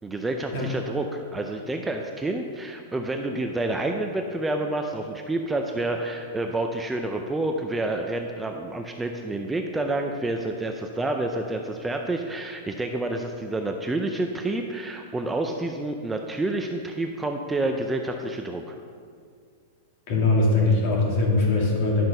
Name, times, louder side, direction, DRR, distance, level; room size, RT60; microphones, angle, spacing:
voice 1, 0.0-18.8, right 2 dB, 5° right, 3 dB, 0.4 m, -29 dB
voice 2, 20.1-22.1, left 2 dB, 45° left, -1 dB, 2.4 m, -21 dB
11.0 x 6.0 x 5.4 m, 2.1 s
supercardioid pair, 160°, 0 cm